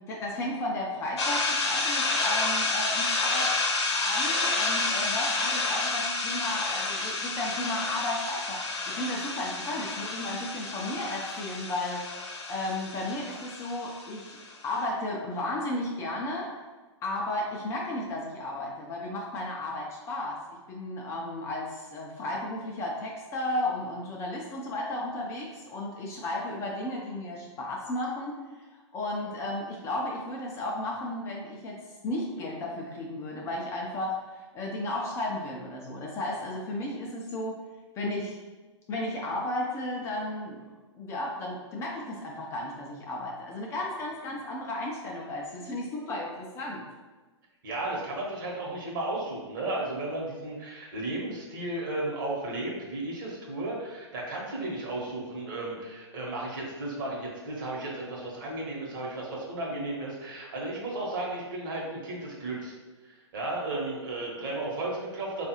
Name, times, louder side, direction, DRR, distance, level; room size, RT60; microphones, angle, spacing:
voice 1, 0.1-3.5 3.9-12.0 12.5-14.4 14.6-16.5 17.0-37.6 38.0-38.4 38.9-46.9, left 1 dB, 20° left, -2 dB, 0.4 m, -34 dB
sound 1, 1.2-14.5, left 3 dB, 60° left, 0.8 m, -30 dB
voice 2, 47.6-62.7 63.1-65.5, right 2 dB, 45° right, -3 dB, 1.0 m, -34 dB
3.8 x 2.4 x 2.9 m, 1.2 s
figure-of-eight pair, 115°, 15 cm